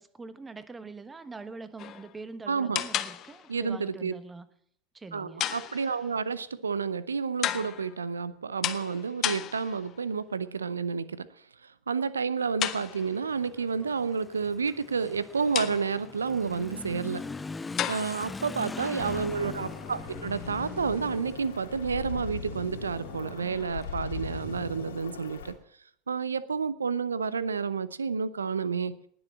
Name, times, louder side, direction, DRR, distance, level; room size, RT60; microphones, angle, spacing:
voice 1, 0.0-4.5 4.9-5.5 18.4-19.3, right 3 dB, 15° right, 13 dB, 1.2 m, -44 dB
sound 1, 1.8-2.2 2.8-3.6 5.4-6.2 7.4-8.0 8.6-10.0 12.6-13.3 15.5-16.1 17.8-18.3, left 12 dB, 40° left, 0.9 m, -33 dB
voice 2, 2.5-2.8 3.5-4.1 5.1-11.3 11.9-17.3 17.9-25.5 26.1-29.0, right 5 dB, 80° right, 18 dB, 0.6 m, -30 dB
Motorcycle / Accelerating revving vroom, 12.6-24.9, left 4 dB, 15° left, 0.5 m, -42 dB
sound 2, 19.0-25.5, left 6 dB, 75° left, 2.0 m, -40 dB
19.0 x 7.1 x 7.3 m, 0.67 s
figure-of-eight pair, 80°, 0 cm